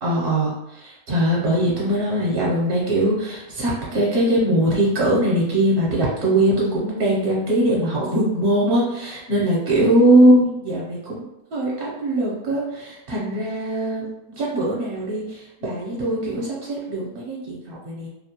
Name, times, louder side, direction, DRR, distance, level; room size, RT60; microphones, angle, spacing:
voice 1, 0.0-11.2 11.5-14.1 14.4-18.1, right 1 dB, 60° right, -5 dB, 0.8 m, -21 dB
2.4 x 2.1 x 2.8 m, 0.92 s
omnidirectional pair, 1.2 m